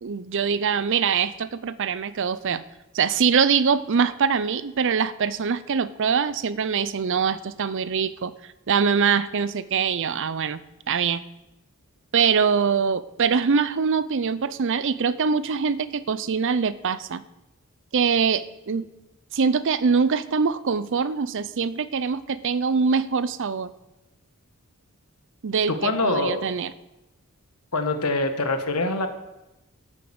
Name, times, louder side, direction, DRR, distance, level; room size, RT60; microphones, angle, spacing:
voice 1, 0.0-2.6 2.9-8.3 8.7-10.6 10.9-11.2 12.1-17.2 17.9-18.9 19.3-23.7 25.4-26.7, right 6 dB, 55° right, 16 dB, 0.5 m, -23 dB
voice 2, 25.7-26.5 27.7-29.1, left 2 dB, 85° left, 7 dB, 1.4 m, -24 dB
13.0 x 7.1 x 7.0 m, 0.98 s
head